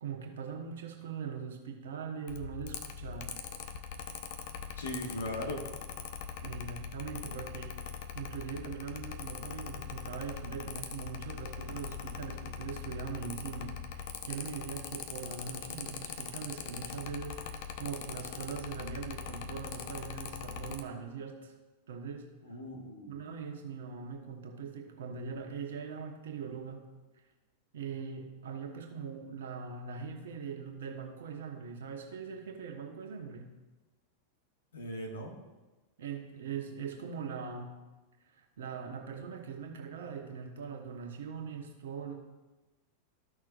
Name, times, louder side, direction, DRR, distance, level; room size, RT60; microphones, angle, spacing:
voice 1, 0.0-3.4 6.4-7.8 8.1-21.5 21.9-22.3 23.1-26.9 27.7-33.5 36.0-37.7 38.4-42.1, right 6 dB, 60° right, 3 dB, 1.1 m, -41 dB
Mechanical fan, 2.3-20.8, left 7 dB, 50° left, 0.7 m, -42 dB
voice 2, 4.7-5.7 22.4-23.4 34.7-35.4, left 1 dB, 70° left, 1 dB, 1.6 m, -39 dB
13.5 x 6.1 x 2.5 m, 1.1 s
figure-of-eight pair, 90°, 0 cm